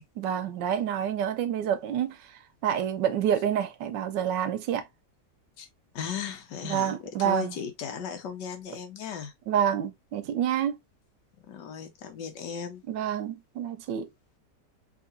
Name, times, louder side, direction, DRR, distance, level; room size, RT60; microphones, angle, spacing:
voice 1, 0.2-2.2 2.6-4.8 6.7-7.5 9.5-10.8 12.9-14.1, right 9 dB, 90° right, 1.3 m, -28 dB
voice 2, 5.9-9.3 11.5-12.8, left 7 dB, 80° left, 1.5 m, -36 dB
3.7 x 2.9 x 2.6 m
omnidirectional pair, 1.9 m